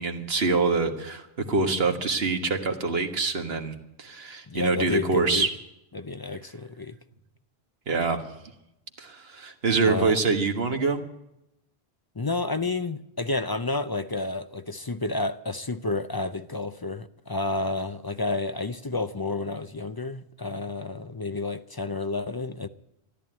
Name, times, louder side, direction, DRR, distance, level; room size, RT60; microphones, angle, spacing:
voice 1, 0.0-5.5 7.9-8.2 9.0-11.0, right 4 dB, 70° right, 1.8 m, -25 dB
voice 2, 4.5-5.5 5.9-7.0 9.8-10.1 12.2-22.7, left 3 dB, 30° left, 0.4 m, -30 dB
13.5 x 11.0 x 8.9 m
omnidirectional pair, 1.1 m